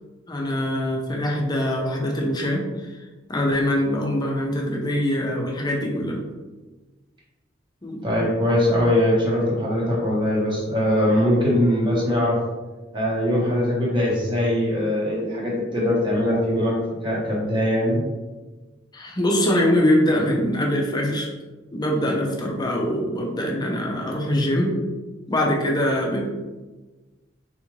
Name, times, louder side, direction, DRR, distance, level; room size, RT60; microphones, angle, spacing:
voice 1, 0.3-3.0 3.3-6.2 7.8-8.1 18.9-21.3 21.7-24.8 25.3-26.3, left 1 dB, 20° left, -1 dB, 0.5 m, -23 dB
voice 2, 8.0-12.4 12.9-18.0, left 1 dB, 25° right, -5 dB, 1.0 m, -21 dB
3.5 x 2.5 x 3.0 m, 1.2 s
head